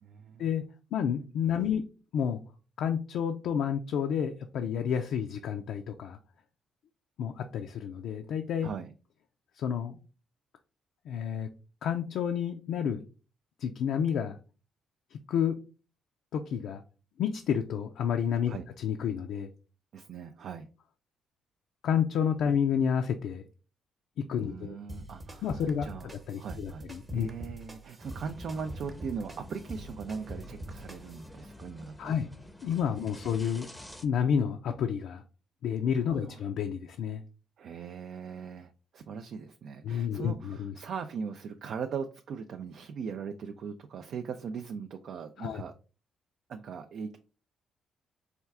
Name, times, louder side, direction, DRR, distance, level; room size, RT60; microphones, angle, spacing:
voice 1, 0.0-0.5 1.6-1.7 8.6-8.9 18.5-18.7 19.9-20.7 24.4-26.1 26.4-26.8 27.1-32.2 36.1-36.4 37.6-45.7 46.5-47.2, right 6 dB, 65° right, 0.3 m, -40 dB
voice 2, 0.9-1.8 2.1-2.4 2.8-6.2 7.2-8.7 9.6-10.0 11.1-11.5 11.8-13.0 13.6-14.4 15.1-15.6 16.3-16.8 17.2-19.5 21.8-23.4 24.3-24.8 25.4-25.9 26.3-27.3 32.0-32.3 32.6-33.7 34.0-35.2 35.6-37.2 39.8-40.7 45.4-45.6, left 8 dB, 80° left, 0.4 m, -30 dB
sound 1, 24.9-31.3, right 1 dB, 25° right, 0.9 m, -44 dB
sound 2, 28.0-34.1, left 1 dB, 5° left, 0.6 m, -49 dB
4.3 x 2.3 x 3.4 m
cardioid pair, 90°, 0 cm